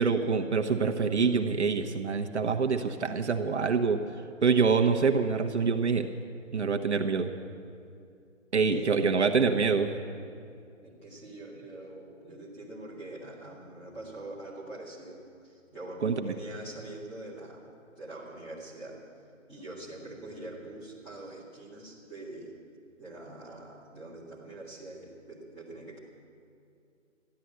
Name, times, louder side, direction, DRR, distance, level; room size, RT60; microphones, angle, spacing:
voice 1, 0.0-4.0 4.4-6.1 6.5-7.3 8.5-9.9 16.0-16.3, right 5 dB, 60° right, 5 dB, 1.0 m, -26 dB
voice 2, 8.7-9.0 10.8-17.7 18.0-19.0 19.5-22.6 23.0-26.0, right 2 dB, 5° left, -8 dB, 1.7 m, -44 dB
14.0 x 11.5 x 7.8 m, 2.5 s
hypercardioid pair, 170°, 39 cm